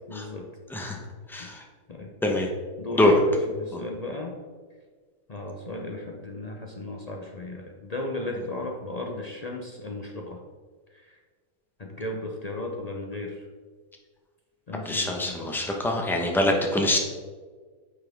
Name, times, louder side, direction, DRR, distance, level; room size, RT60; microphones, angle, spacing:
voice 1, 0.1-0.5 0.9-1.1 1.4-1.5 1.9-2.1 2.8-4.3 5.3-10.4 10.9-11.2 11.8-13.5 14.7-15.5, left 2 dB, 45° left, 1 dB, 0.5 m, -35 dB
voice 2, 1.3-1.6 2.2-2.5 2.9-3.1 3.7-3.8 14.8-17.0, left 1 dB, ahead, 1 dB, 0.6 m, -24 dB
9.4 x 5.9 x 3.5 m, 1.5 s
omnidirectional pair, 1.6 m